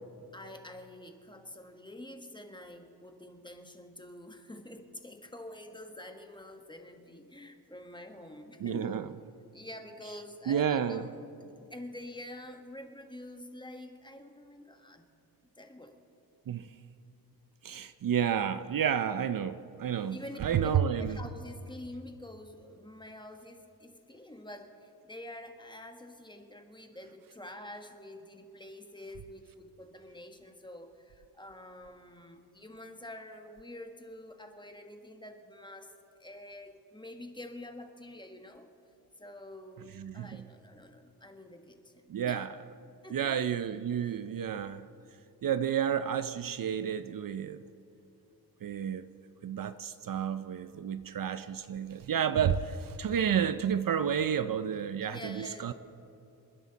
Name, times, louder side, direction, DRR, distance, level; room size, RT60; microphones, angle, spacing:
voice 1, 0.3-8.9 9.5-15.0 15.6-15.9 20.0-35.9 36.2-38.7 39.2-42.5 43.0-43.5 55.0-55.7, left 1 dB, 10° left, 5 dB, 1.4 m, -47 dB
voice 2, 8.6-9.0 10.5-11.0 16.5-16.7 17.6-21.2 40.0-40.4 42.1-42.5 43.1-44.9 45.4-47.6 48.6-49.0 49.4-55.7, right 8 dB, 55° right, 12 dB, 0.6 m, -31 dB
28.0 x 11.0 x 4.1 m, 2.7 s
cardioid pair, 90°, 40 cm